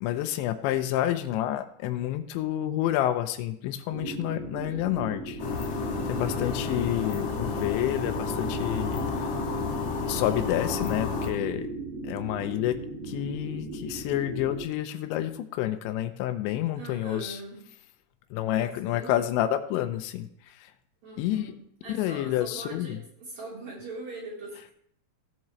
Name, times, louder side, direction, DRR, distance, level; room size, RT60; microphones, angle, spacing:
voice 1, 0.0-5.4 6.1-9.3 10.1-11.7 12.0-12.8 13.1-17.4 18.3-20.3 21.2-21.5 21.9-23.0, left 13 dB, 90° left, 9 dB, 3.0 m, -29 dB
sound 1, 3.9-14.6, right 2 dB, 75° right, 3.5 m, -37 dB
sound 2, 5.4-11.3, left 5 dB, 65° left, 1.5 m, -31 dB
voice 2, 6.1-6.6 16.8-17.6 18.6-19.2 21.0-24.7, right 2 dB, 40° right, -7 dB, 4.6 m, -42 dB
17.0 x 7.4 x 3.2 m, 0.69 s
omnidirectional pair, 5.2 m